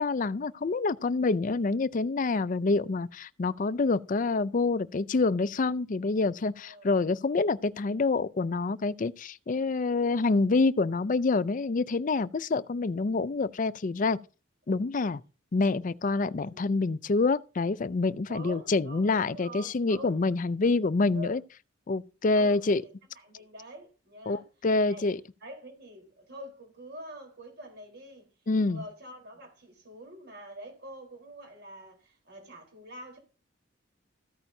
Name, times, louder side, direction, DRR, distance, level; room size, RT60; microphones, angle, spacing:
voice 1, 0.0-14.2 14.7-15.2 15.5-21.4 21.9-22.8 24.3-25.2 28.5-28.8, left 3 dB, 40° left, 0.4 m, -27 dB
voice 2, 6.6-7.1 16.4-16.7 18.3-20.2 20.6-20.7 21.1-21.4 22.2-24.5 24.8-25.1 25.4-28.3 28.6-33.2, right 1 dB, 50° right, 4.0 m, -46 dB
14.5 x 8.8 x 2.7 m
head